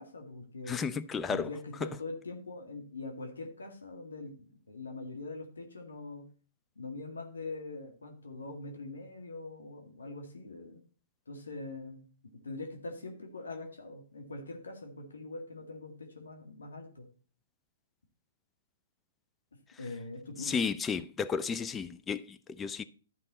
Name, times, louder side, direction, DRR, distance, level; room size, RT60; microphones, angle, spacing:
voice 1, 0.0-0.8 1.3-6.3 6.8-10.8 11.3-17.1 19.8-20.6, left 3 dB, 85° left, 1.8 m, -43 dB
voice 2, 0.7-1.5 1.8-1.9 20.4-22.8, left 6 dB, 15° left, 0.5 m, -33 dB
12.0 x 5.4 x 4.1 m
hypercardioid pair, 125°, 0 cm